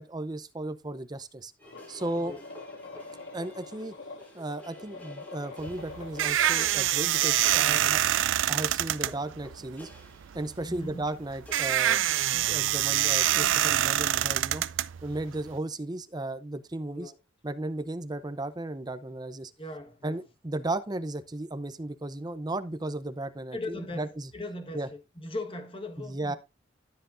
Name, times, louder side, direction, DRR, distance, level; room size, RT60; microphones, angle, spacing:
voice 1, 0.0-1.5 1.9-2.3 3.3-3.9 4.3-8.0 8.5-9.9 10.3-12.0 12.3-14.7 15.0-17.1 17.4-19.5 20.0-24.3 24.7-24.9 26.0-26.4, right 2 dB, 20° right, 0.6 m, -35 dB
sound 1, 1.6-6.7, left 3 dB, 85° left, 6.3 m, -45 dB
sound 2, 1.6-13.6, equal, 10° left, 1.8 m, -52 dB
sound 3, 5.6-15.6, right 12 dB, 80° right, 0.4 m, -26 dB
voice 2, 10.6-11.0 16.9-17.2 19.6-20.2 23.5-26.4, left 2 dB, 30° left, 1.4 m, -39 dB
12.5 x 7.6 x 2.6 m
head